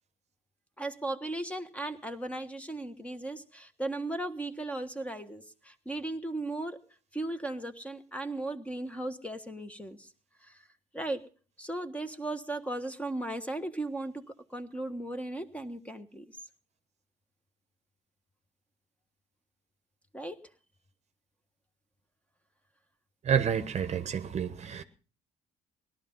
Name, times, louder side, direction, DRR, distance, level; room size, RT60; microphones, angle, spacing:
voice 1, 0.8-6.8 7.1-10.1 10.4-10.6 10.9-11.2 11.6-14.2 14.5-16.3 20.1-20.4, right 2 dB, 10° left, 8 dB, 1.4 m, -36 dB
voice 2, 23.2-24.8, right 8 dB, 40° right, 11 dB, 1.0 m, -29 dB
18.0 x 12.0 x 5.5 m, 0.39 s
cardioid pair, 110°, 17 cm